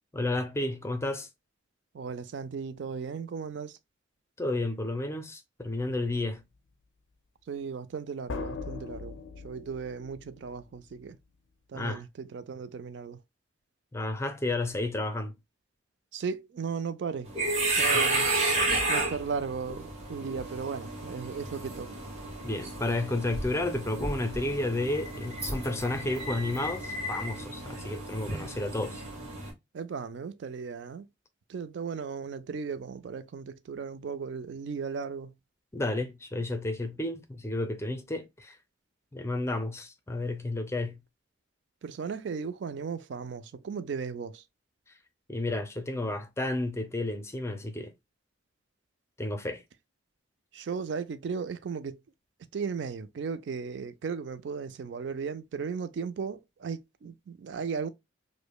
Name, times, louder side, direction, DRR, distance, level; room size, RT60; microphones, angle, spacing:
voice 1, 0.1-1.3 4.4-6.4 11.7-12.0 13.9-15.3 17.9-18.0 22.4-29.0 35.7-38.6 39.1-41.0 45.3-47.9 49.2-49.6, left 2 dB, 15° left, 0.4 m, -31 dB
voice 2, 1.9-3.8 7.5-9.2 9.4-11.2 11.7-13.2 16.1-17.3 17.7-18.3 18.9-22.0 29.7-31.1 31.5-35.3 41.8-44.4 50.5-52.0 52.5-57.9, right 5 dB, 65° right, 0.4 m, -36 dB
sound 1, 5.6-5.9 8.3-10.9, left 4 dB, 75° left, 0.4 m, -40 dB
sound 2, 17.3-29.5, right 2 dB, 35° right, 1.4 m, -32 dB
4.9 x 2.1 x 2.2 m
head